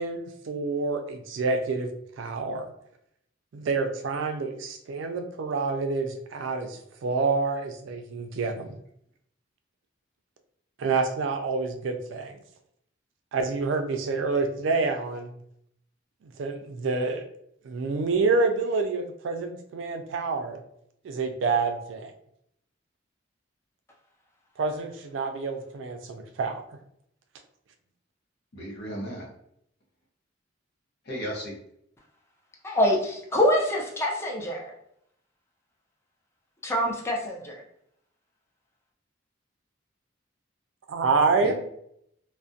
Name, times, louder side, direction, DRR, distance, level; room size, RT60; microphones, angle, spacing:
voice 1, 0.0-1.9 2.2-2.7 3.5-8.7 10.8-12.4 13.3-15.3 16.2-17.2 17.6-20.6 21.0-22.1 24.6-26.6 40.9-41.5, right 4 dB, 70° right, 6 dB, 0.3 m, -27 dB
voice 2, 28.5-29.3 31.1-31.6 41.4-41.5, equal, 55° left, -2 dB, 0.8 m, -34 dB
voice 3, 32.6-34.7 36.6-37.6, left 1 dB, 15° left, -1 dB, 0.4 m, -25 dB
2.4 x 2.0 x 2.6 m, 0.73 s
head